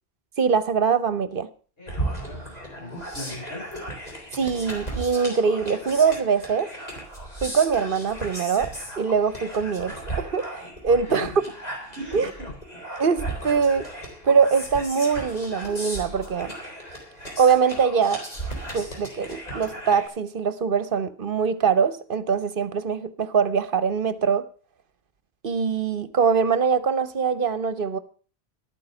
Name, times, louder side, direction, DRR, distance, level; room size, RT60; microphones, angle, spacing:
voice 1, 0.4-1.5 4.3-6.7 7.4-8.7 9.0-11.3 12.1-12.3 13.0-16.5 17.4-18.2 18.7-24.4 25.4-28.0, right 6 dB, 55° right, 1.0 m, -23 dB
voice 2, 1.8-3.8 10.9-11.4 12.0-12.5, left 2 dB, 65° left, 7.3 m, -39 dB
sound 1, 1.9-20.1, right 1 dB, 40° left, 4.0 m, -36 dB
12.5 x 9.4 x 6.6 m
omnidirectional pair, 1.1 m